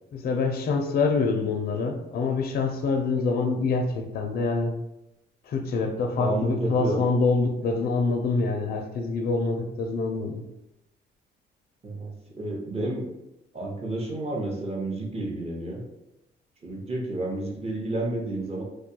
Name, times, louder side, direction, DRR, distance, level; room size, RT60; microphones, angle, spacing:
voice 1, 0.1-4.7 5.4-10.4, left 4 dB, 50° left, 3 dB, 0.4 m, -25 dB
voice 2, 6.2-7.0 11.8-12.1 12.4-13.0 13.5-15.8 16.6-18.6, right 1 dB, 30° right, -1 dB, 0.7 m, -30 dB
2.2 x 2.2 x 2.8 m, 0.90 s
cardioid pair, 90°, 20 cm